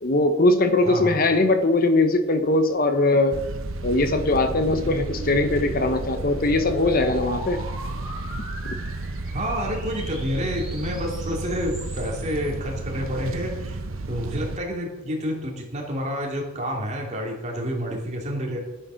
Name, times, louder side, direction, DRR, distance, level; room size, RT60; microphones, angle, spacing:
voice 1, 0.0-3.4 3.8-7.6, left 2 dB, 45° left, 8 dB, 0.9 m, -21 dB
voice 2, 0.8-1.2 9.3-18.7, equal, 35° right, -1 dB, 2.9 m, -29 dB
sound 1, 3.3-14.6, right 2 dB, 85° right, 0.9 m, -32 dB
sound 2, 3.9-12.5, right 1 dB, ahead, 4.0 m, -41 dB
12.0 x 9.6 x 5.7 m, 1.0 s
head